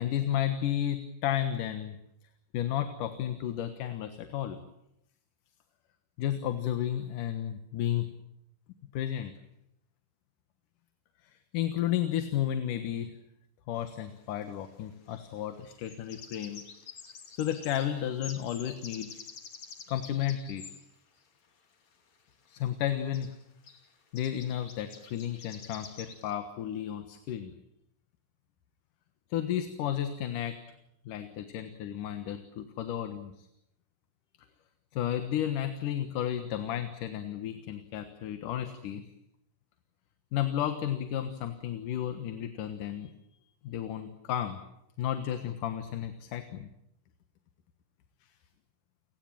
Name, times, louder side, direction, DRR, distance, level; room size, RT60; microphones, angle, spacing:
voice 1, 0.0-2.0 2.5-4.6 6.2-8.1 8.9-9.3 11.2-13.1 13.7-16.6 17.4-19.1 19.9-20.6 22.5-23.3 24.1-27.5 29.3-30.6 31.1-33.5 34.9-39.0 40.3-43.1 43.6-44.6 45.0-46.7, left 11 dB, 75° left, 9 dB, 2.9 m, -32 dB
sound 1, 13.8-13.9 15.6-20.8 22.6-22.7 22.9-23.0 23.1-23.4 23.6-23.9 24.2-26.3, left 6 dB, 60° left, 3.9 m, -48 dB
29.5 x 18.5 x 9.0 m, 0.81 s
omnidirectional pair, 3.8 m